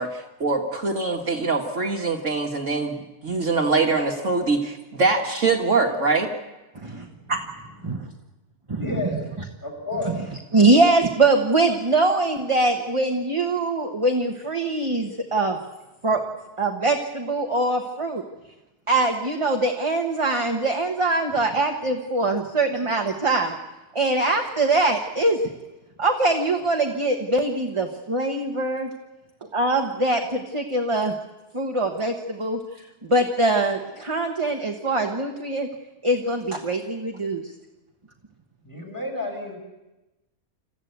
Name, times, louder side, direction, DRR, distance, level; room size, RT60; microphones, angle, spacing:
voice 1, 0.0-6.3, right 3 dB, 55° right, 2 dB, 1.8 m, -23 dB
voice 2, 6.7-7.4 7.8-8.0 8.7-8.9 10.0-10.2 10.5-15.6 16.0-16.2 16.6-18.2 18.9-23.6 23.9-25.4 26.0-28.9 29.5-31.1 31.5-35.7 36.0-37.5, right 2 dB, 20° right, 3 dB, 1.3 m, -23 dB
voice 3, 8.8-9.2 9.6-10.1 38.6-39.6, left 2 dB, 10° left, 1 dB, 5.8 m, -31 dB
27.0 x 14.5 x 8.2 m, 1.1 s
omnidirectional pair, 1.6 m